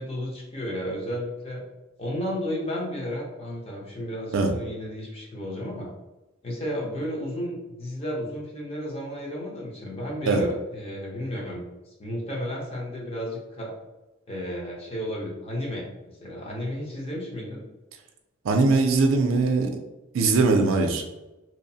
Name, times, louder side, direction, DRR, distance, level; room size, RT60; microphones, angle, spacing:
voice 1, 0.0-1.6 2.0-5.9 6.4-11.7 12.0-13.7 14.3-15.9 16.2-17.6, equal, 30° left, -3 dB, 0.7 m, -33 dB
voice 2, 18.4-19.7 20.1-21.0, right 3 dB, 70° right, 4 dB, 0.4 m, -21 dB
2.9 x 2.0 x 2.6 m, 1.0 s
head